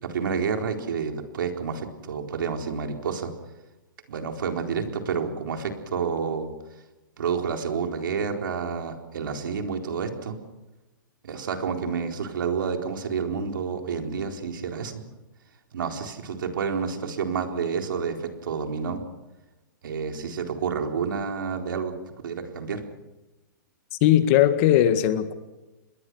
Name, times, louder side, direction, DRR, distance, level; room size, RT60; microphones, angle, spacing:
voice 1, 0.0-3.3 4.1-6.5 7.2-10.4 11.2-15.0 15.7-19.0 19.8-22.8, right 6 dB, 75° right, 4.1 m, -29 dB
voice 2, 23.9-25.3, left 11 dB, 35° left, 1.8 m, -19 dB
27.0 x 21.5 x 6.3 m
hypercardioid pair, 160°, 11 cm